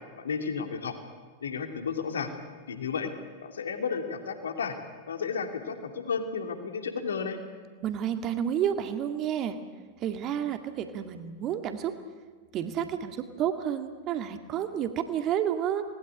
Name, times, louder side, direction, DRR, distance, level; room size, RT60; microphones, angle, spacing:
voice 1, 0.2-0.9 1.4-2.3 2.7-3.1 3.4-4.8 5.1-7.4, left 5 dB, 70° left, 6 dB, 2.8 m, -32 dB
voice 2, 7.8-9.6 10.0-12.0 12.5-15.8, right 9 dB, 35° right, 7 dB, 2.0 m, -30 dB
27.5 x 20.0 x 9.7 m, 1.5 s
figure-of-eight pair, 90°, 0 cm